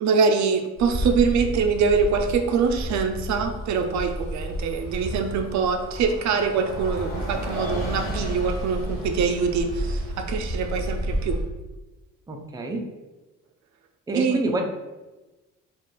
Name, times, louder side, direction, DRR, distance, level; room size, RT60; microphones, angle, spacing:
voice 1, 0.0-11.4 14.1-14.4, right 5 dB, 70° right, 6 dB, 0.4 m, -24 dB
Bus, 0.8-11.4, equal, 50° left, 1.5 m, -31 dB
voice 2, 12.3-12.9 14.1-14.6, right 2 dB, 15° right, 3 dB, 0.4 m, -28 dB
2.4 x 2.3 x 3.8 m, 1.1 s
cardioid pair, 90°, 30 cm